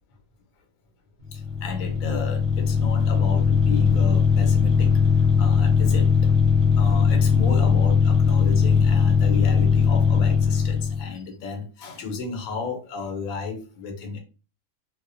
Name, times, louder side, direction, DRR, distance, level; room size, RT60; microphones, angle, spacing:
sound 1, 1.2-11.1, left 6 dB, 55° right, 0.9 m, -19 dB
voice 1, 1.3-5.0 5.4-6.3 6.8-14.2, left 4 dB, 85° left, 1.0 m, -33 dB
2.4 x 2.1 x 2.5 m
omnidirectional pair, 1.4 m